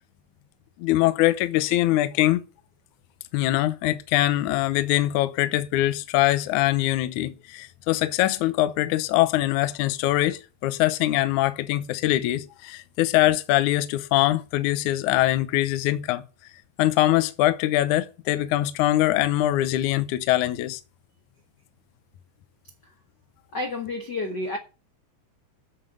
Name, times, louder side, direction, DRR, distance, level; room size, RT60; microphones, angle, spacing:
voice 1, 0.8-2.4 3.3-16.2 16.8-20.8, left 15 dB, 85° left, 1.7 m, -23 dB
voice 2, 23.5-24.6, left 2 dB, 65° left, 1.0 m, -30 dB
8.4 x 7.8 x 7.7 m
omnidirectional pair, 4.4 m